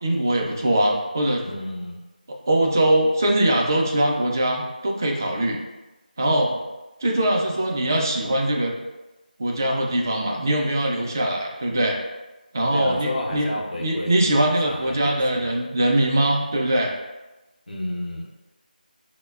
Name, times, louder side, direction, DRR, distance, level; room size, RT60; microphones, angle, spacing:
voice 1, 0.0-1.4 2.3-5.6 6.2-6.6 7.0-8.7 9.4-12.0 12.5-13.5 13.8-16.9, right 1 dB, 20° right, 0 dB, 0.3 m, -22 dB
voice 2, 1.4-2.0 12.7-15.5 17.7-18.3, left 1 dB, 65° left, -2 dB, 0.7 m, -31 dB
5.3 x 2.1 x 2.2 m, 1.1 s
figure-of-eight pair, 170°, 5 cm